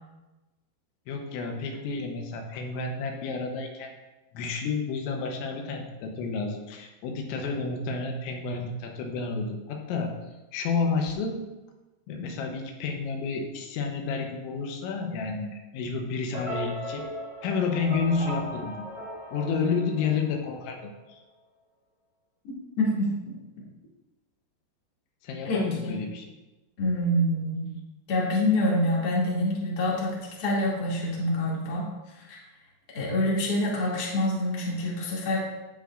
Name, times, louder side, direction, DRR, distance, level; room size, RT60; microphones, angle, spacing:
voice 1, 1.1-3.9 4.3-10.1 10.5-11.4 12.1-17.1 17.4-18.9 19.3-21.2 25.2-26.2, left 4 dB, 85° left, 3 dB, 3.2 m, -30 dB
sound 1, 16.3-20.6, left 1 dB, 50° right, 0.7 m, -38 dB
voice 2, 22.8-23.1 25.4-25.9 26.8-27.6 28.1-31.9 32.2-32.4 32.9-35.4, left 1 dB, 35° left, -5 dB, 1.8 m, -26 dB
16.5 x 5.7 x 2.5 m, 1.1 s
omnidirectional pair, 5.3 m